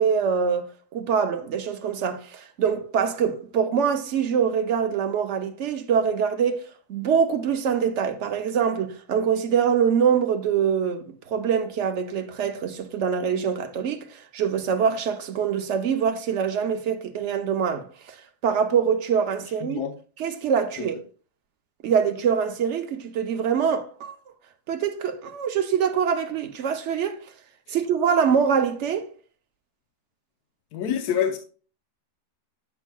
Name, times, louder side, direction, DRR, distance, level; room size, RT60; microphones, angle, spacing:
voice 1, 0.0-6.6 6.9-18.2 18.4-19.8 20.2-21.0 21.8-24.1 24.7-27.2 27.7-29.1, right 7 dB, 65° right, 0.7 m, -24 dB
voice 2, 19.6-19.9 20.8-20.9 27.7-27.8 30.7-31.4, left 9 dB, 70° left, 1.2 m, -27 dB
8.1 x 7.2 x 2.2 m
omnidirectional pair, 1.9 m